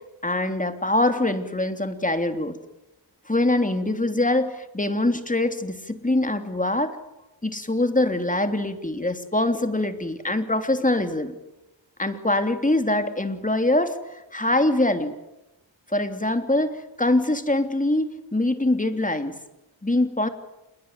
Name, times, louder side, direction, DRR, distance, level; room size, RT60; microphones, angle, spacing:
voice 1, 0.0-2.6 3.3-7.0 7.4-11.4 12.0-15.1 15.9-19.4 19.8-20.3, left 1 dB, 15° left, 7 dB, 3.1 m, -24 dB
27.5 x 21.5 x 9.5 m, 0.94 s
cardioid pair, 65°, 46 cm